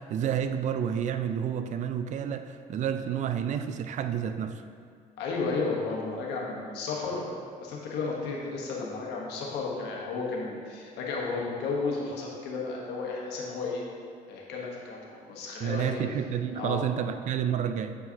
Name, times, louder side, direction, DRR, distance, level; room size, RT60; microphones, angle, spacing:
voice 1, 0.0-4.6 15.6-18.0, right 8 dB, 45° right, 9 dB, 0.4 m, -30 dB
voice 2, 5.2-7.3 7.6-13.8 14.3-16.0 16.5-16.8, left 4 dB, 90° left, -3 dB, 1.2 m, -33 dB
7.5 x 4.7 x 2.8 m, 2.2 s
cardioid pair, 110°, 17 cm